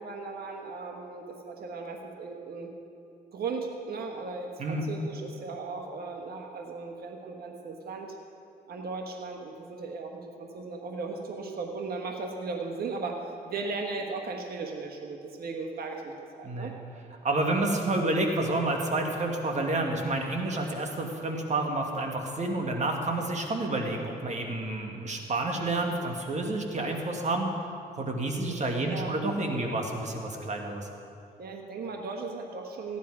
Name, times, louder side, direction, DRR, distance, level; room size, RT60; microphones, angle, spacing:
voice 1, 0.0-2.7 3.3-8.2 8.7-16.7 28.8-29.1 31.4-33.0, right 4 dB, 60° right, 2 dB, 1.3 m, -37 dB
voice 2, 17.2-27.5 28.0-30.9, right 2 dB, 40° right, 2 dB, 1.9 m, -29 dB
14.5 x 10.5 x 4.8 m, 2.5 s
cardioid pair, 75°, 18 cm